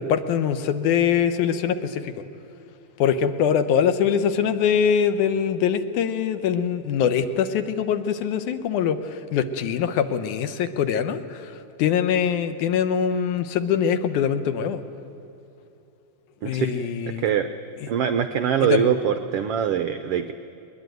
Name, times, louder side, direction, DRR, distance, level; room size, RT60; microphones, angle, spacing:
voice 1, 0.0-2.1 3.0-14.8 16.4-17.3 17.8-17.9 18.6-19.0, left 8 dB, 80° left, 11 dB, 2.4 m, -23 dB
voice 2, 16.4-16.7 17.1-17.5 17.9-20.3, right 9 dB, 85° right, 9 dB, 1.3 m, -23 dB
21.0 x 20.5 x 9.2 m, 2.7 s
omnidirectional pair, 3.6 m